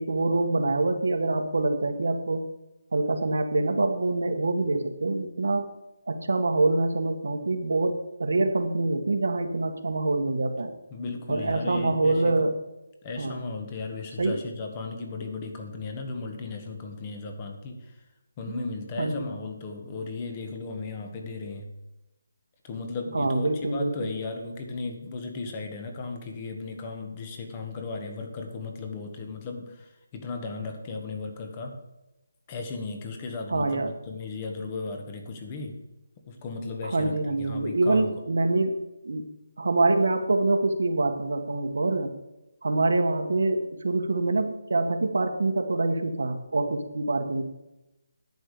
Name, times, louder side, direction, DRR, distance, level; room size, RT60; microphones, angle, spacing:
voice 1, 0.0-2.4 2.9-5.7 6.1-10.7 11.3-12.5 13.2-13.4 14.2-14.4 19.0-19.3 23.1-24.1 33.5-33.9 36.8-39.2 39.6-42.1 42.6-47.4, right 2 dB, 75° right, 6 dB, 1.5 m, -25 dB
voice 2, 10.9-12.5 13.0-18.0 18.4-21.7 22.6-31.7 32.5-35.8 36.3-38.2, left 3 dB, 25° left, 4 dB, 1.5 m, -36 dB
11.0 x 8.1 x 5.0 m, 0.96 s
figure-of-eight pair, 165°, 0 cm